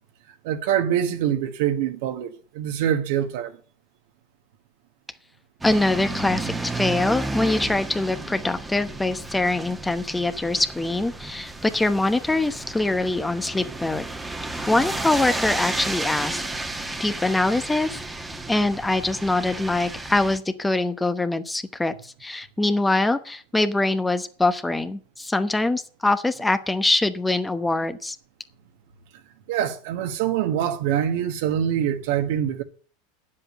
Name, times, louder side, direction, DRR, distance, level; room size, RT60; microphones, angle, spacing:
voice 1, 0.4-3.6 29.5-32.6, right 10 dB, 65° right, 1.4 m, -24 dB
voice 2, 5.6-14.0 14.7-16.4 17.0-18.0 18.5-28.2, left 2 dB, 10° left, 1.0 m, -23 dB
sound 1, 5.6-20.4, right 2 dB, 10° right, 1.4 m, -32 dB
9.9 x 7.7 x 7.6 m
hypercardioid pair, 90°, 0 cm